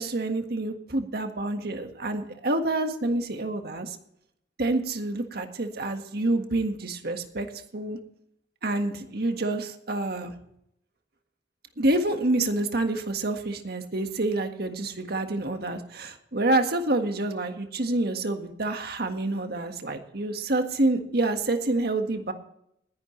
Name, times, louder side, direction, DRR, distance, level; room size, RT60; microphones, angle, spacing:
voice 1, 0.0-4.0 4.6-7.5 7.7-8.0 8.6-10.3 11.8-22.3, right 2 dB, 60° right, 6 dB, 1.7 m, -27 dB
20.0 x 10.5 x 3.2 m, 0.73 s
head